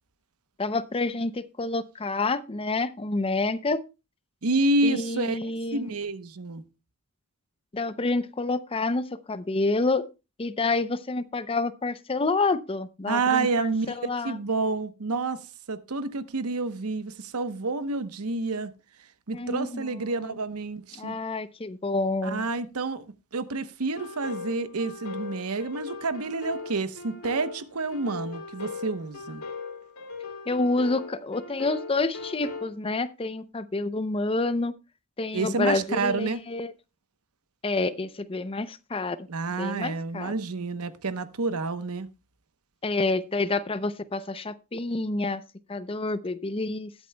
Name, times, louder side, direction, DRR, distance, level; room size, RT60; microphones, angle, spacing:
voice 1, 0.6-3.8 4.8-5.9 7.7-10.1 10.4-14.4 19.3-20.0 20.9-22.5 30.5-34.7 35.2-36.7 37.6-39.3 39.6-40.3 42.8-45.4 45.7-46.9, left 3 dB, 25° left, 0.5 m, -28 dB
voice 2, 4.4-6.6 13.1-18.7 19.3-21.2 22.2-23.1 23.3-29.4 35.3-36.4 39.3-42.1, right 3 dB, 90° right, 0.9 m, -29 dB
sound 1, 24.0-32.7, left 4 dB, 80° left, 2.2 m, -39 dB
20.0 x 8.2 x 2.2 m
head